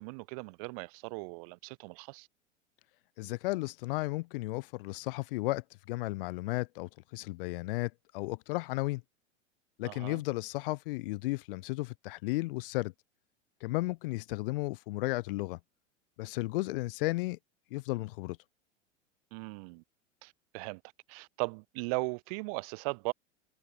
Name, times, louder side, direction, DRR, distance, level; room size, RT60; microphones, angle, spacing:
voice 1, 0.0-2.3 9.8-10.2 19.3-19.8 20.2-20.8 21.1-23.1, right 31 dB, 30° right, 0.4 m, -38 dB
voice 2, 3.2-9.0 9.8-12.9 13.6-15.6 16.2-17.4 17.7-18.4, left 21 dB, 45° left, 0.7 m, -34 dB
figure-of-eight pair, 90°, 38 cm